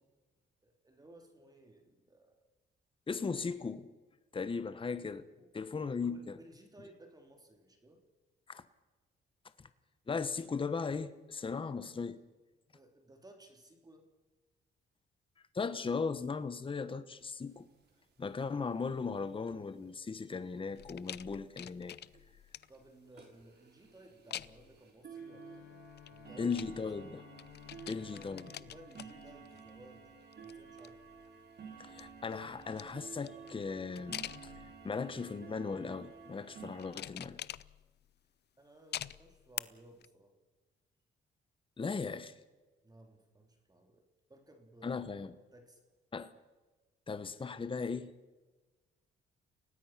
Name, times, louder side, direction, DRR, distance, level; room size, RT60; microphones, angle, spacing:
voice 1, 0.6-2.3 5.4-5.5 5.8-8.0 12.7-14.1 22.7-26.6 27.8-30.1 30.4-31.0 38.6-40.3 42.8-44.0 44.3-45.1 45.5-45.8, right 1 dB, 20° right, 3.3 m, -58 dB
voice 2, 3.1-3.9 4.3-5.3 5.5-6.4 8.5-8.6 9.6-9.7 10.1-12.2 15.5-17.7 18.2-22.0 26.4-27.2 27.9-28.4 31.8-37.4 41.8-42.4 44.8-45.3 46.1-46.3 47.1-48.1, left 5 dB, 25° left, 1.1 m, -37 dB
sound 1, 17.2-17.3 17.6-17.7 17.8-18.0 18.4-18.7 19.5-19.6 20.1-20.2 20.6-20.7 21.0-21.1 21.7-21.8 22.1-22.3 22.7-22.8 23.1-36.9, right 6 dB, 55° right, 5.4 m, -52 dB
sound 2, 20.8-22.9 24.3-24.8 25.8-27.1 27.4-29.8 30.2-31.3 31.8-35.0 35.6-36.0 36.8-38.1 38.9-39.6 40.0-40.1, left 11 dB, 55° left, 0.7 m, -46 dB
Bowed string instrument, 25.1-30.4, left 11 dB, 80° left, 2.5 m, -58 dB
29.5 x 18.5 x 5.9 m
cardioid pair, 90°, 20 cm